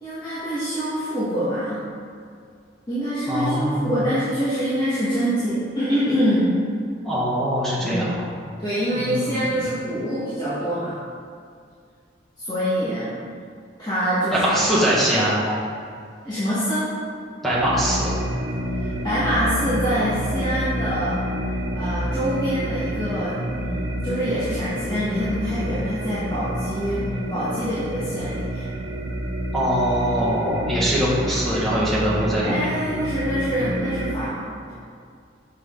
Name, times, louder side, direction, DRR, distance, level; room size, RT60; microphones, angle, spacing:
voice 1, 0.0-1.8 2.9-6.6 7.8-8.1 8.6-11.0 12.4-13.1 13.8-14.5 16.2-16.9 18.8-21.2 21.7-28.7 30.6-30.9 32.4-34.7, equal, 20° left, -12 dB, 1.4 m, -25 dB
voice 2, 3.3-3.9 7.0-8.1 8.9-9.5 14.3-15.6 17.4-18.1 29.5-32.5, equal, ahead, -8 dB, 1.6 m, -22 dB
sound 1, 17.5-34.1, equal, 70° right, 0.7 m, -28 dB
6.5 x 6.2 x 3.8 m, 2.2 s
head